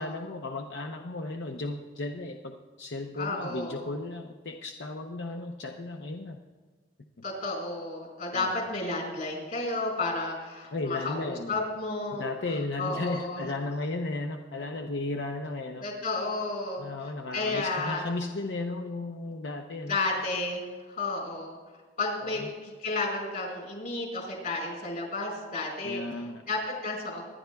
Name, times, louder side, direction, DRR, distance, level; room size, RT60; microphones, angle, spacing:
voice 1, 0.0-6.4 8.3-8.5 10.7-11.6 12.1-15.8 16.8-20.0 22.2-22.5 25.8-26.4, left 2 dB, 90° left, 3 dB, 0.7 m, -35 dB
voice 2, 3.2-3.9 7.2-12.3 12.8-13.4 15.8-18.0 19.9-21.6 22.0-26.0 26.5-27.2, left 2 dB, 55° left, 0 dB, 4.6 m, -32 dB
24.5 x 11.0 x 2.3 m, 1.4 s
head